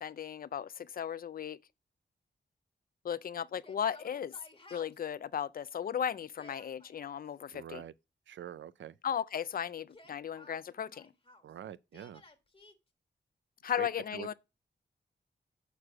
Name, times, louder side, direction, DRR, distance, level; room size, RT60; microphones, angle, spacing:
voice 1, 0.0-1.6 3.0-4.3 4.7-7.8 9.0-11.1 13.6-14.3, left 8 dB, 50° left, 0.4 m, -36 dB
Yell, 3.6-5.1 6.2-7.2 9.8-11.5 11.9-12.7, left 2 dB, 30° left, 1.4 m, -57 dB
voice 2, 7.5-7.9 8.3-9.0 11.4-12.2 13.8-14.3, right 10 dB, 85° right, 0.4 m, -45 dB
6.7 x 4.7 x 6.0 m
cardioid pair, 75°, 19 cm